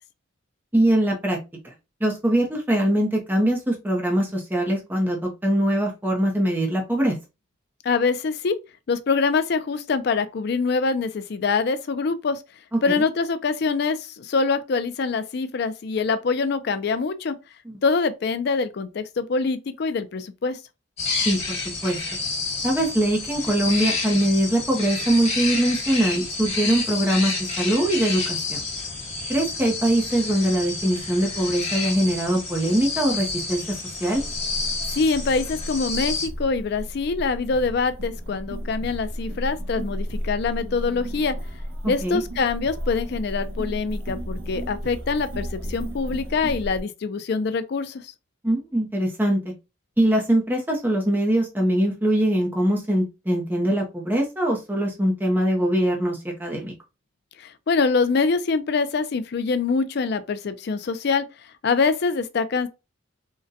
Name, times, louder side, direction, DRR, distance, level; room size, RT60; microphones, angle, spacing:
voice 1, 0.7-1.4 2.0-7.2 12.9-13.0 17.7-17.8 21.2-21.6 21.8-22.0 22.6-28.6 29.3-34.2 41.8-42.2 48.4-49.4 50.0-56.7, right 1 dB, 10° right, 0.5 m, -22 dB
voice 2, 7.8-8.6 8.9-12.4 12.8-17.4 17.8-20.6 34.9-41.4 41.9-48.1 57.4-61.3 61.6-62.7, left 4 dB, 55° left, 0.4 m, -24 dB
sound 1, 21.0-36.3, left 3 dB, 30° left, 1.2 m, -29 dB
sound 2, 34.1-46.8, equal, 85° right, 1.0 m, -33 dB
3.7 x 2.1 x 2.6 m
head